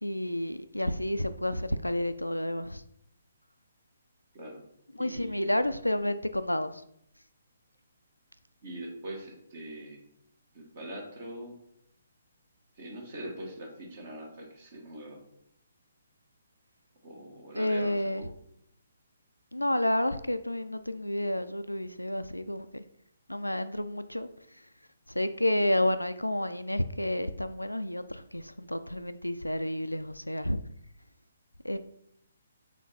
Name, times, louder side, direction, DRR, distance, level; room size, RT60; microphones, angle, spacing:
voice 1, 0.0-2.8 5.0-6.8 17.5-18.3 19.5-22.8 23.3-24.3 25.1-30.6 31.6-31.8, left 1 dB, 90° left, 11 dB, 0.4 m, -30 dB
voice 2, 4.9-5.5 8.6-10.0 10.5-11.5 12.7-15.2 17.0-18.3, right 1 dB, 45° right, 1 dB, 1.5 m, -42 dB
6.1 x 3.8 x 4.2 m, 0.73 s
figure-of-eight pair, 135°, 0 cm